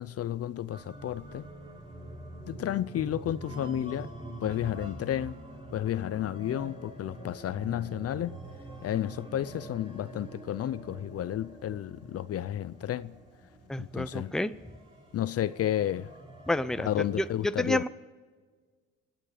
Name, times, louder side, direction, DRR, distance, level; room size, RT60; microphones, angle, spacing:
voice 1, 0.0-1.4 2.4-4.1 4.4-5.3 5.7-8.3 8.8-13.1 13.8-14.3 15.1-16.1 16.8-17.8, left 11 dB, 55° left, 0.5 m, -32 dB
sound 1, 0.7-17.3, right 1 dB, 20° right, 3.3 m, -45 dB
voice 2, 13.7-14.5 16.5-16.9 17.2-17.3 17.6-17.9, left 1 dB, ahead, 0.6 m, -29 dB
27.0 x 9.1 x 5.0 m
cardioid pair, 90°, 30 cm